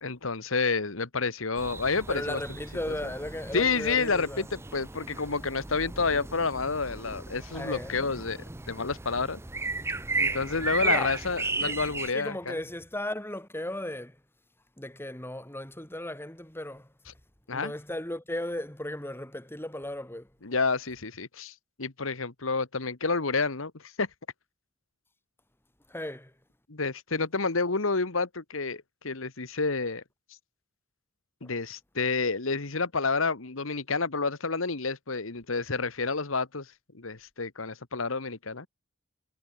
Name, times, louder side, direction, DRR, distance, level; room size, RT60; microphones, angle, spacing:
voice 1, 0.0-2.4 2.9-3.1 3.5-8.4 8.7-9.4 10.2-12.6 17.5-17.7 20.4-24.1 26.7-30.0 31.4-38.7, left 4 dB, 80° left, 1.6 m, -29 dB
sound 1, 1.6-12.1, right 3 dB, 15° right, 0.6 m, -35 dB
voice 2, 2.1-4.4 7.5-7.9 10.8-11.2 11.6-11.8 12.1-14.2 14.8-16.9 17.5-20.3 25.9-26.3, left 1 dB, 10° left, 3.6 m, -36 dB
head